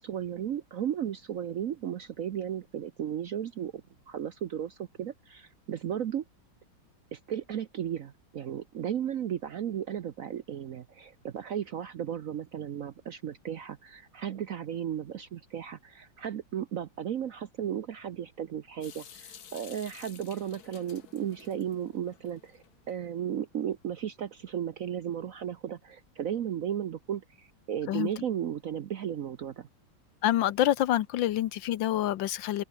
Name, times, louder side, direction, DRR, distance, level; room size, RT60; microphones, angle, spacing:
voice 1, 0.0-6.2 7.1-29.7, right 9 dB, 60° right, 0.9 m, -35 dB
Water tap faucet / Sink (filling or washing) / Drip, 18.8-22.9, left 8 dB, 55° left, 1.7 m, -52 dB
voice 2, 30.2-32.6, left 13 dB, 75° left, 1.5 m, -27 dB
open air
omnidirectional pair, 2.1 m